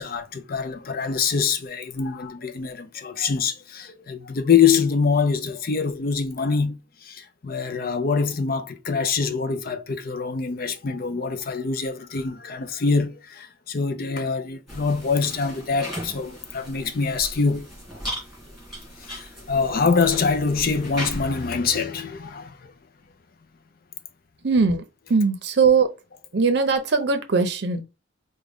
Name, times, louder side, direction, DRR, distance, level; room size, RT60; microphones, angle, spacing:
voice 1, 0.0-17.7 19.0-22.7, left 5 dB, 45° left, 0.5 m, -24 dB
sound 1, 14.7-21.5, equal, ahead, 2.3 m, -37 dB
voice 2, 24.4-25.9 26.3-27.8, right 5 dB, 55° right, 0.6 m, -20 dB
4.8 x 2.2 x 3.5 m
head